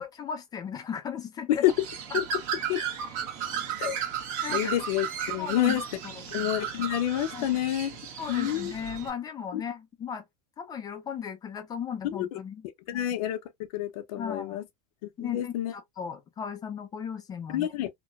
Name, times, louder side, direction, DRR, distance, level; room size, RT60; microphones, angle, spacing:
voice 1, 0.0-1.7 4.4-4.7 5.4-6.3 7.3-7.6 8.2-10.2 10.6-12.7 12.9-13.1 14.2-14.6 15.2-17.7, left 7 dB, 20° left, 0.5 m, -36 dB
Bird, 1.6-9.1, right 7 dB, 45° right, 1.1 m, -34 dB
voice 2, 4.5-5.8 6.3-7.9 8.3-8.7 9.5-9.6 12.0-12.4 12.9-13.4 13.7-14.6 15.0-15.7 17.5-17.9, left 12 dB, 70° left, 0.8 m, -28 dB
3.0 x 2.2 x 2.4 m
supercardioid pair, 150°, 19 cm